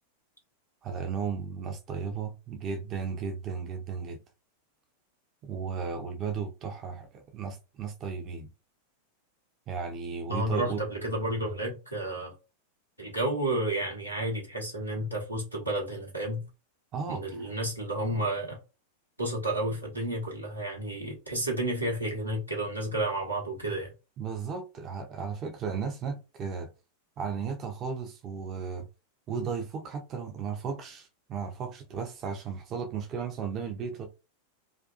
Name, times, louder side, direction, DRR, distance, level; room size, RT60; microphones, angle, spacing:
voice 1, 0.8-4.2 5.4-8.5 9.7-10.8 16.9-17.5 24.2-26.7 27.2-28.9 29.3-34.1, right 6 dB, 30° right, 0.4 m, -35 dB
voice 2, 10.3-12.3 13.0-16.4 17.1-18.6 19.2-23.9, right 1 dB, 85° right, 1.0 m, -31 dB
2.5 x 2.3 x 2.3 m
figure-of-eight pair, 90°, 0 cm